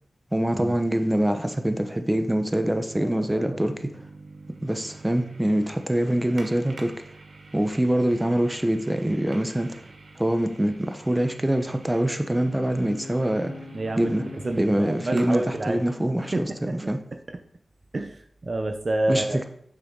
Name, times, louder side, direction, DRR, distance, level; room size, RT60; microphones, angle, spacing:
voice 1, 0.3-4.0 4.6-6.9 7.5-9.9 10.2-13.5 14.0-14.2 14.6-17.0 19.1-19.5, right 1 dB, 15° right, 7 dB, 0.9 m, -24 dB
sound 1, 0.8-15.9, right 3 dB, 75° right, 1.4 m, -47 dB
voice 2, 3.0-3.6 13.7-14.1 14.4-15.8 16.3-16.9 17.9-19.4, right 2 dB, 50° right, 6 dB, 0.6 m, -29 dB
sound 2, 12.2-16.8, left 2 dB, 60° left, 2.0 m, -42 dB
6.9 x 5.7 x 3.9 m, 0.65 s
cardioid pair, 50°, 0 cm